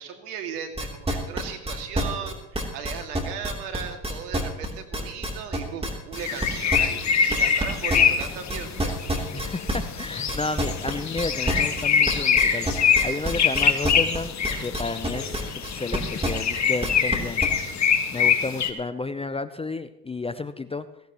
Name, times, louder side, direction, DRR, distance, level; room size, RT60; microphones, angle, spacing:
voice 1, 0.0-9.0, right 7 dB, 75° right, 6 dB, 2.3 m, -37 dB
sound 1, 0.8-7.6 7.9-17.5, right 1 dB, 10° right, 3.3 m, -28 dB
sound 2, 6.1-18.7, left 7 dB, 35° left, 1.7 m, -24 dB
voice 2, 9.3-17.5 18.1-20.9, left 3 dB, 15° left, 12 dB, 0.6 m, -32 dB
17.0 x 16.5 x 3.0 m, 0.90 s
hypercardioid pair, 75°, 47 cm